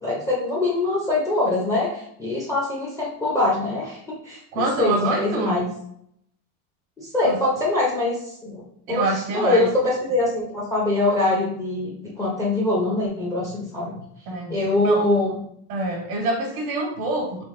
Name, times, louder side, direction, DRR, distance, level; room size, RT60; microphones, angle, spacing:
voice 1, 0.0-4.0 4.2-5.7 7.0-8.6 8.9-9.1 9.3-13.9 14.5-15.4, left 2 dB, 5° left, -6 dB, 0.6 m, -23 dB
voice 2, 4.5-5.6 7.2-7.4 8.9-9.7 14.3-14.6 14.8-15.0 15.7-17.4, right 2 dB, 80° right, 0 dB, 1.3 m, -25 dB
3.5 x 2.9 x 3.6 m, 0.71 s
cardioid pair, 155°, 42 cm